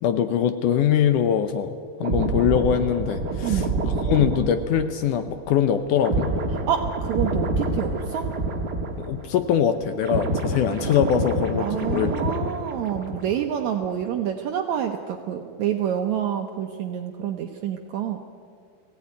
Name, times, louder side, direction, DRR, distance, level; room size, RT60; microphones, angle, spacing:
voice 1, 0.0-6.3 9.0-12.1, left 9 dB, 75° left, 9 dB, 2.1 m, -23 dB
sound 1, 2.0-9.5 9.8-13.5 13.8-14.0, right 2 dB, 45° right, 1.3 m, -27 dB
voice 2, 3.4-3.8 6.7-8.3 11.6-18.2, right 9 dB, 70° right, 4 dB, 1.8 m, -27 dB
21.0 x 16.0 x 9.5 m, 2.3 s
omnidirectional pair, 4.1 m